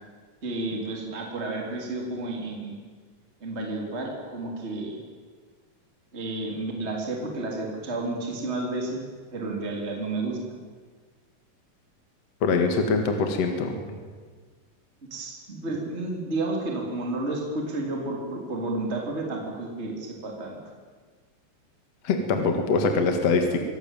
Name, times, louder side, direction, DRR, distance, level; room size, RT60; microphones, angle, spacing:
voice 1, 0.4-2.8 3.4-5.0 6.1-9.0 9.3-10.6 15.1-20.6, right 2 dB, 20° right, 0 dB, 3.6 m, -31 dB
voice 2, 12.4-14.0 22.0-23.6, left 4 dB, 55° left, 5 dB, 2.8 m, -23 dB
26.0 x 18.0 x 9.1 m, 1.5 s
omnidirectional pair, 3.8 m